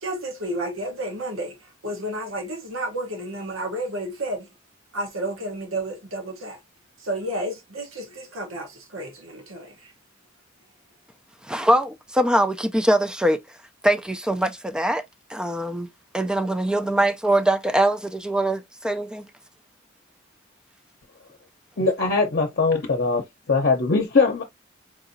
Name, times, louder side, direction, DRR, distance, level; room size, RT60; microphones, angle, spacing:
voice 1, 0.0-4.5 4.9-6.6 7.0-9.9, right 1 dB, 80° right, 1.1 m, -31 dB
voice 2, 11.4-13.4 13.8-15.0 15.3-15.9 16.1-19.3, right 1 dB, 5° right, 0.4 m, -22 dB
voice 3, 21.8-24.4, left 4 dB, 55° left, 0.8 m, -21 dB
4.8 x 2.6 x 2.6 m
head